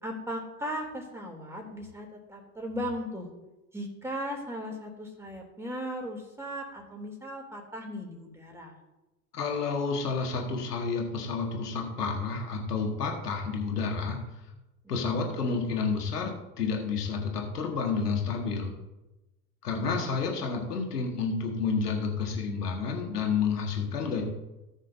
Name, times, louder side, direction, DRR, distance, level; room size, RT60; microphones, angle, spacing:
voice 1, 0.0-3.3 3.7-8.7 14.8-15.3, equal, 5° right, 0 dB, 3.1 m, -37 dB
voice 2, 9.3-14.2 14.9-16.3 16.6-18.7 19.6-24.2, left 5 dB, 80° left, 1 dB, 2.0 m, -30 dB
18.0 x 6.2 x 2.7 m, 1.0 s
figure-of-eight pair, 70°, 46 cm